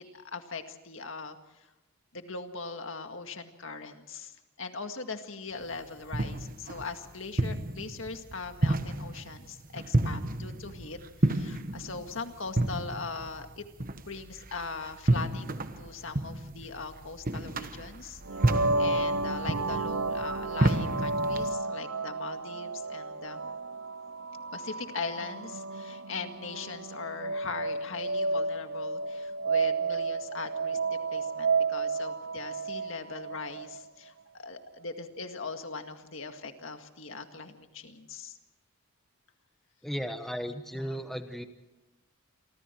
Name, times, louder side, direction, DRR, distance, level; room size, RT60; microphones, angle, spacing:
voice 1, 0.0-1.7 2.1-13.7 14.0-18.2 18.8-23.4 24.5-38.4 40.7-41.0, left 4 dB, 60° left, 6 dB, 2.0 m, -40 dB
sound 1, 5.6-21.5, right 1 dB, 40° right, 1.2 m, -31 dB
sound 2, 18.3-33.9, right 3 dB, 65° right, 0.7 m, -32 dB
voice 2, 39.8-41.4, equal, ahead, 7 dB, 1.0 m, -35 dB
28.5 x 24.5 x 4.6 m, 0.99 s
head